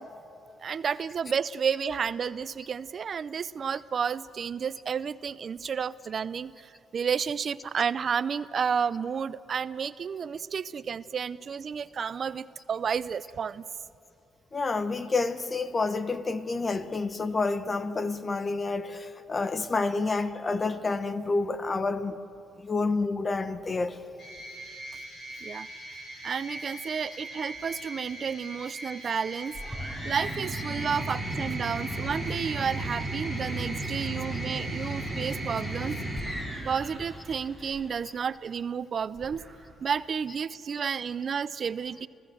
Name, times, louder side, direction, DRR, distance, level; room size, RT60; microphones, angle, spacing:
voice 1, 0.6-13.6 25.4-25.7 26.2-29.6 30.0-36.0 36.7-39.4 39.8-42.1, right 6 dB, 50° right, 0.5 m, -31 dB
voice 2, 14.5-22.2 22.6-24.0 34.3-34.4, left 3 dB, 30° left, 1.2 m, -29 dB
sound 1, 24.2-37.0, equal, 50° left, 8.0 m, -43 dB
sound 2, 29.5-38.0 39.2-39.8, right 1 dB, 5° left, 5.0 m, -34 dB
29.5 x 16.0 x 7.7 m
cardioid pair, 90°, 0 cm